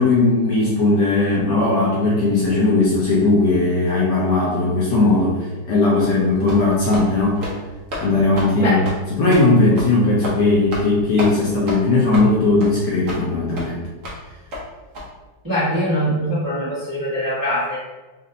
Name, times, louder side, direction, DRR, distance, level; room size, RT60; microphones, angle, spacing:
voice 1, 0.0-5.4 5.7-7.5 8.0-13.8, left 2 dB, 70° left, -5 dB, 1.0 m, -18 dB
sound 1, 6.0-6.1 6.5-6.6 6.9-7.1 7.4-7.6 7.9-8.0 8.4-8.5 8.8-9.0 9.3-9.4 9.8-9.9 10.2-10.4 10.7-10.9 11.2-11.3 11.7-11.8 12.1-12.3 12.6-12.7 13.1-13.2 13.6-13.7 14.0-14.2 14.5-14.6 14.9-15.0, left 1 dB, 55° right, 0.9 m, -30 dB
voice 2, 15.4-17.8, equal, 20° right, -10 dB, 0.5 m, -22 dB
4.0 x 2.5 x 2.6 m, 1.2 s
omnidirectional pair, 2.3 m